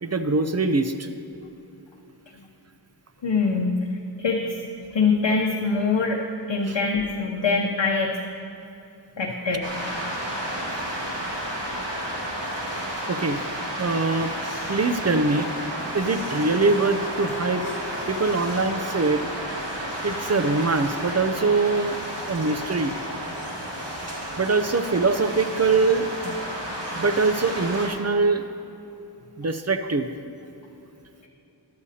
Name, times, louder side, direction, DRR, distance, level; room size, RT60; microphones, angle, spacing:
voice 1, 0.0-1.1 6.7-6.8 13.1-13.4 13.8-14.3 14.7-15.5 15.9-17.6 18.1-19.3 20.0-22.0 22.3-22.9 24.4-26.4 26.9-28.4 29.4-30.1, right 3 dB, 35° right, 9 dB, 0.6 m, -23 dB
voice 2, 3.2-3.9 4.2-6.2 6.5-8.2 9.2-9.7, left 4 dB, 80° left, 0 dB, 0.8 m, -24 dB
sound 1, 9.6-27.9, equal, 75° right, 2.0 m, -32 dB
Harp, 16.2-21.7, left 3 dB, 45° left, 1.4 m, -43 dB
13.0 x 11.5 x 2.8 m, 2.9 s
wide cardioid pair, 60°, 43 cm